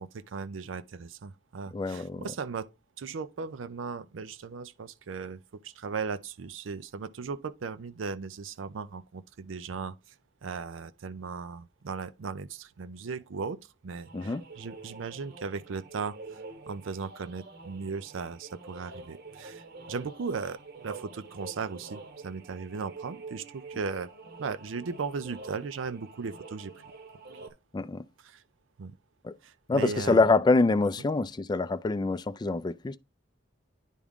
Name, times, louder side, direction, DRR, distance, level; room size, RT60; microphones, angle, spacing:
voice 1, 0.0-2.7 3.0-9.9 10.4-16.4 16.7-20.6 20.8-24.1 24.4-26.7 28.2-28.4 28.8-29.0 29.4-30.3, right 5 dB, 90° right, 0.5 m, -37 dB
voice 2, 1.7-2.3 14.1-14.4 27.7-28.0 29.2-29.3 29.7-33.0, left 3 dB, 20° left, 0.3 m, -25 dB
sound 1, 14.0-27.5, right 3 dB, 55° right, 1.0 m, -47 dB
10.0 x 3.6 x 3.6 m
head